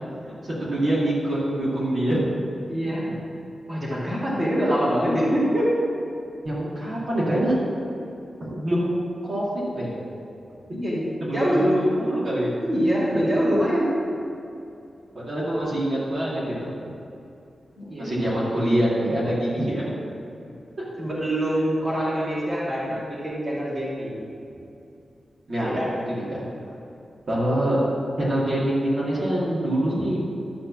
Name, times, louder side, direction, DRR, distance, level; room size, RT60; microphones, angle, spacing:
voice 1, 0.4-2.2 3.1-3.2 6.4-7.5 8.4-9.0 9.2-9.4 9.7-9.9 11.2-12.5 15.1-16.9 18.0-19.9 20.8-20.9 25.5-25.8 26.1-26.4 27.3-27.8 28.2-30.2, right 1 dB, 40° right, -8 dB, 2.3 m, -25 dB
voice 2, 2.7-3.1 3.7-5.7 10.7-11.9 12.6-14.0 17.8-18.5 21.0-24.2 25.6-25.9, equal, 25° right, -8 dB, 2.4 m, -24 dB
12.0 x 4.2 x 7.3 m, 2.6 s
wide cardioid pair, 175°, 0 cm